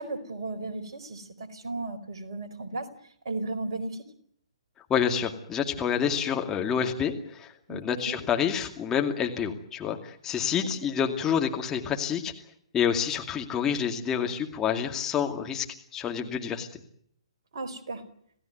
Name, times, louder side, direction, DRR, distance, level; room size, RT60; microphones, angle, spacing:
voice 1, 0.0-2.9 3.2-4.0 7.7-8.2 17.5-18.0, right 2 dB, 50° right, 6 dB, 4.5 m, -35 dB
voice 2, 4.9-12.3 12.7-15.7 15.9-16.7, left 8 dB, 15° left, 3 dB, 2.4 m, -28 dB
28.0 x 17.5 x 9.4 m, 0.69 s
figure-of-eight pair, 130°, 3 cm